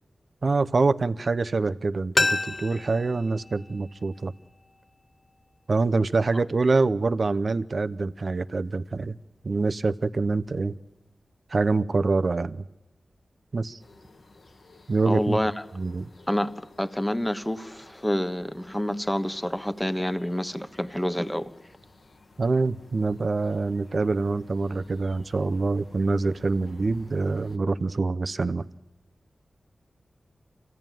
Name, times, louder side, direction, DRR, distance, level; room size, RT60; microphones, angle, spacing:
voice 1, 0.4-4.3 5.7-9.2 9.4-10.7 11.5-12.6 13.5-13.8 14.9-15.4 15.7-16.1 22.4-28.6, right 3 dB, 60° right, 0.7 m, -25 dB
sound 1, 2.1-4.9 5.2-5.3, left 2 dB, 40° left, 0.8 m, -30 dB
sound 2, 13.8-27.6, left 2 dB, 70° left, 1.5 m, -53 dB
voice 2, 15.0-15.5 16.3-21.5, equal, 5° left, 1.2 m, -28 dB
26.5 x 16.0 x 9.2 m
cardioid pair, 50°, 0 cm